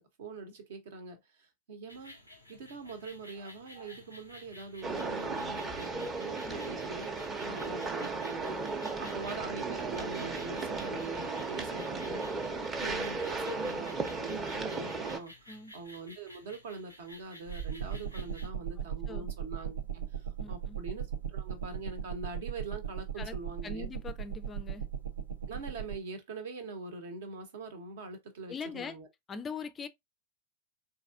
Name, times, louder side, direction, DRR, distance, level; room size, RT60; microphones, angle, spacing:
voice 1, 0.0-2.2 2.5-12.2 12.8-15.3 15.7-23.9 25.5-29.1, right 3 dB, 55° right, 0.9 m, -43 dB
sound 1, 1.9-18.5, right 3 dB, 90° right, 0.9 m, -51 dB
sound 2, 4.8-15.2, right 3 dB, 20° right, 0.7 m, -35 dB
voice 2, 8.8-9.1 10.6-10.7 12.5-12.7 15.5-15.7 18.8-19.3 20.4-20.8 23.2-23.4 23.6-24.8 28.5-29.0 29.3-29.9, left 5 dB, 20° left, 0.4 m, -42 dB
sound 3, 17.7-26.0, right 8 dB, 75° right, 0.5 m, -38 dB
4.0 x 2.8 x 2.4 m
figure-of-eight pair, 90°, 0 cm